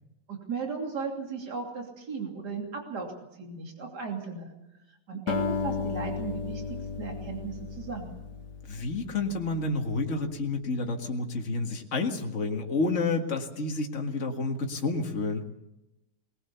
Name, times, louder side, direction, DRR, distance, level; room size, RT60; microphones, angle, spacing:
voice 1, 0.3-3.1 3.4-4.5 5.1-8.1, right 4 dB, 70° right, 1 dB, 3.5 m, -36 dB
Acoustic guitar, 5.3-9.7, left 5 dB, 75° left, 1.8 m, -34 dB
voice 2, 8.7-15.4, left 3 dB, 45° left, 2 dB, 2.2 m, -30 dB
21.0 x 20.0 x 7.0 m, 0.94 s
omnidirectional pair, 1.8 m